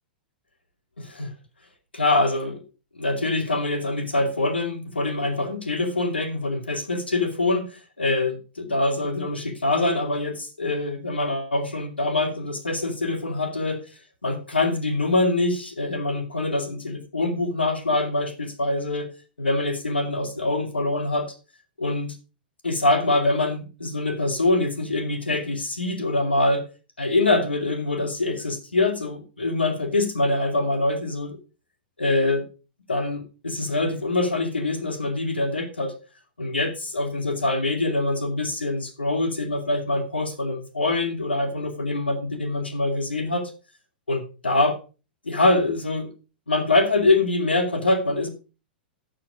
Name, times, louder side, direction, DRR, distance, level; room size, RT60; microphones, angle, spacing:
voice 1, 1.0-1.3 1.9-2.6 2.9-13.8 14.2-19.1 19.4-21.3 21.8-22.2 22.6-26.7 27.0-31.4 32.0-32.4 32.9-35.9 36.4-43.5 44.1-44.8 45.2-46.1 46.5-48.3, left 2 dB, 85° left, 7 dB, 2.3 m, -24 dB
12.0 x 6.3 x 4.8 m, 0.32 s
figure-of-eight pair, 105°, 5 cm